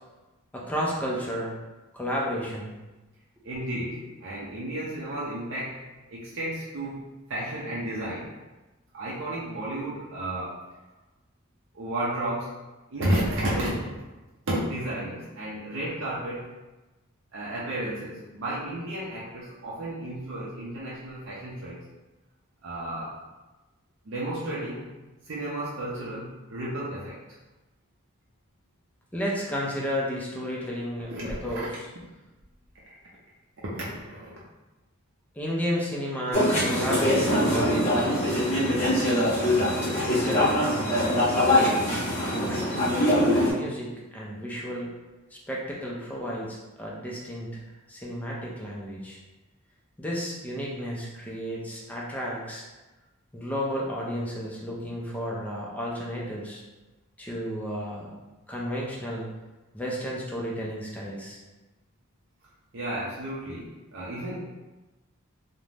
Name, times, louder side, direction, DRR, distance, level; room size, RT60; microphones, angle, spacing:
voice 1, 0.5-1.5 1.9-2.7 29.1-31.7 35.4-38.2 40.1-41.1 41.4-42.9 43.5-44.9 45.3-47.5 47.9-49.2 50.0-52.6 53.3-56.6 57.2-58.2 58.5-59.3 59.7-61.4, equal, 5° left, -4 dB, 0.4 m, -32 dB
voice 2, 3.4-5.8 6.1-8.3 8.9-10.6 11.7-12.5 12.9-14.0 14.5-16.5 17.3-21.8 22.6-23.2 24.0-24.9 25.2-27.2 31.1-31.7 33.6-34.4 62.7-64.4, right 1 dB, 60° right, -7 dB, 0.5 m, -32 dB
sound 1, 36.3-43.5, left 1 dB, 30° left, 0.8 m, -23 dB
2.5 x 2.1 x 3.1 m, 1.1 s
head